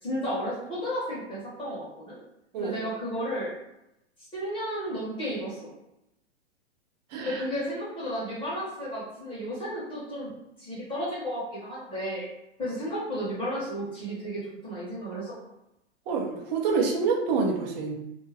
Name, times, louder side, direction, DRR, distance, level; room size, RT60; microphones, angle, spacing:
voice 1, 0.0-2.2 2.6-3.5 4.3-5.7 7.2-10.3 10.6-12.3 12.6-15.3, equal, 15° left, -7 dB, 1.0 m, -33 dB
voice 2, 7.1-7.4 16.1-17.9, right 4 dB, 35° right, -1 dB, 0.7 m, -27 dB
2.5 x 2.1 x 3.3 m, 0.87 s
hypercardioid pair, 135°, 36 cm